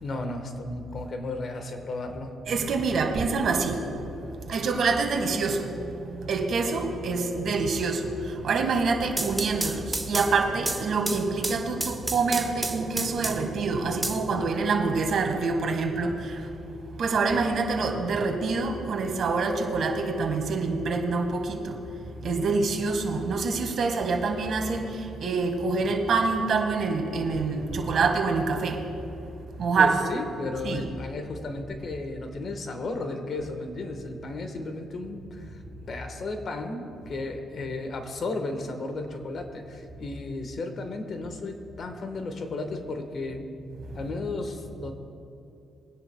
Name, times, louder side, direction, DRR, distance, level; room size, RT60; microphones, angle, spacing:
voice 1, 0.0-2.3 29.7-35.6 35.9-43.5 43.9-44.9, left 2 dB, 50° left, 6 dB, 1.3 m, -34 dB
voice 2, 2.5-16.5 17.0-28.9 29.2-29.3 29.6-29.9 30.6-30.9 43.8-44.0, right 4 dB, 60° right, 4 dB, 1.6 m, -26 dB
sound 1, 8.9-13.6 14.0-15.0, right 2 dB, 15° right, 0.9 m, -32 dB
23.5 x 10.0 x 2.2 m, 2.7 s
cardioid pair, 90°, 0 cm